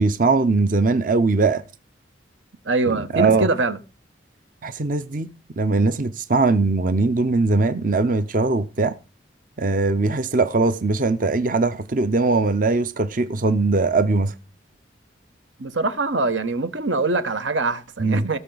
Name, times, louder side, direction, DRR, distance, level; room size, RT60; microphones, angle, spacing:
voice 1, 0.0-1.6 2.9-3.5 4.6-5.3 5.6-9.0 9.6-14.3 18.0-18.3, right 3 dB, 45° right, 0.6 m, -20 dB
voice 2, 2.7-3.8 15.6-18.4, right 3 dB, 80° right, 1.1 m, -23 dB
18.0 x 6.7 x 4.0 m
head